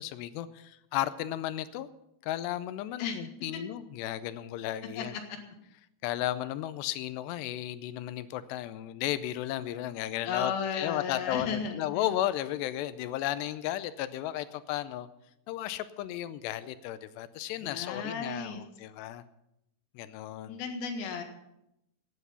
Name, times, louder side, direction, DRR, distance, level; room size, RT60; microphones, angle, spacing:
voice 1, 0.0-1.9 2.2-5.1 6.0-15.1 15.5-19.2 20.0-20.6, left 13 dB, 85° left, 14 dB, 2.7 m, -34 dB
voice 2, 10.2-12.1 17.6-18.6 20.5-21.2, left 6 dB, 65° left, 4 dB, 3.4 m, -34 dB
16.0 x 9.5 x 5.6 m, 0.83 s
omnidirectional pair, 4.9 m